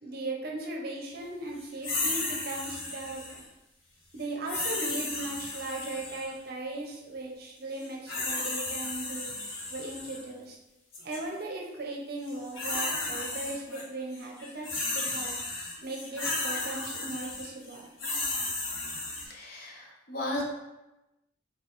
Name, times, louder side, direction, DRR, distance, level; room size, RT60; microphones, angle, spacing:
voice 1, 0.0-3.4 4.1-9.3 9.7-10.6 11.0-15.3 15.8-17.9, right 2 dB, 50° right, 0 dB, 0.6 m, -38 dB
sound 1, 1.8-3.4 4.5-6.3 7.8-10.2 10.9-11.2 12.2-13.8 14.1-19.3, left 2 dB, 80° left, 1.0 m, -34 dB
voice 2, 19.2-20.4, left 1 dB, 50° left, -2 dB, 0.8 m, -35 dB
4.0 x 2.3 x 3.8 m, 0.99 s
head